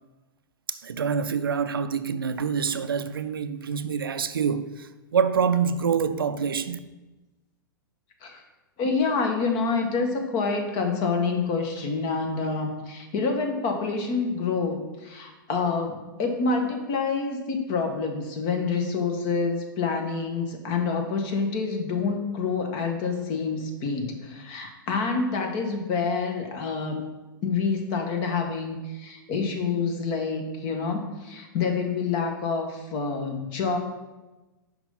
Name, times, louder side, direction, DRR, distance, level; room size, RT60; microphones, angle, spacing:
voice 1, 0.7-6.8, right 6 dB, 90° right, 0.5 m, -26 dB
voice 2, 8.8-27.0 27.4-33.8, left 4 dB, 45° left, 1.5 m, -27 dB
5.9 x 5.2 x 5.6 m
hypercardioid pair, 115°, 12 cm